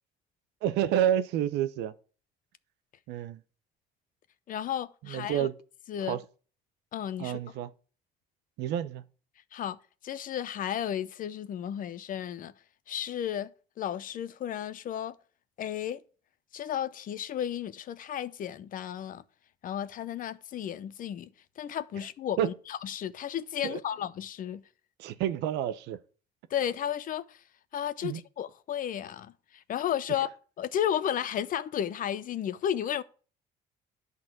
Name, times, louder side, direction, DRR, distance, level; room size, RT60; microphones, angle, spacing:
voice 1, 0.6-1.9 3.1-3.4 5.1-5.5 6.1-6.2 7.2-7.7 8.6-9.0 22.4-22.5 23.6-23.8 25.0-26.0 28.0-28.2, right 10 dB, 85° right, 0.8 m, -29 dB
voice 2, 4.5-5.5 5.9-6.2 6.9-7.4 9.5-9.8 10.0-12.5 12.9-13.5 13.8-15.1 15.6-16.0 16.5-19.2 19.6-24.6 26.5-27.4 27.7-30.3 30.6-33.0, left 10 dB, 55° left, 0.7 m, -33 dB
11.0 x 4.1 x 7.5 m
cardioid pair, 110°, 17 cm